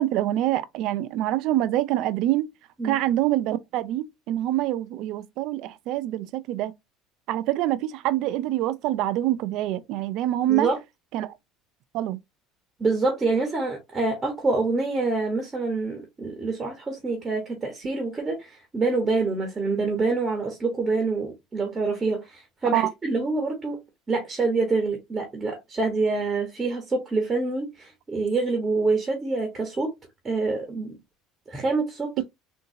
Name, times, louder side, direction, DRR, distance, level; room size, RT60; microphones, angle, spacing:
voice 1, 0.0-2.5 2.8-6.7 7.3-10.7 11.1-11.3 11.9-12.2 22.7-22.9 32.2-32.3, right 14 dB, 65° right, 0.4 m, -25 dB
voice 2, 12.8-23.8 24.1-29.9 30.2-31.0 31.5-32.2, right 3 dB, 20° right, 1.1 m, -26 dB
3.7 x 2.6 x 2.7 m
supercardioid pair, 115°, 0 cm